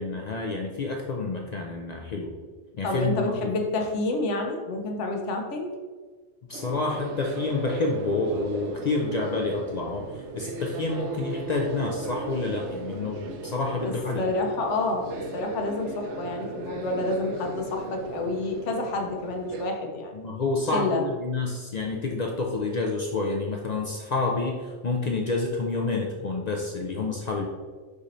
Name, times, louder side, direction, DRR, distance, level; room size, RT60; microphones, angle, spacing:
voice 1, 0.0-2.3 2.8-3.3 6.5-14.2 20.1-27.5, left 3 dB, 60° left, 0 dB, 0.4 m, -29 dB
voice 2, 2.8-5.7 13.8-20.1 20.6-21.0, left 2 dB, 85° left, 2 dB, 1.0 m, -29 dB
sound 1, 6.5-19.7, right 3 dB, 80° right, 0.9 m, -36 dB
4.9 x 2.6 x 4.1 m, 1.4 s
omnidirectional pair, 1.2 m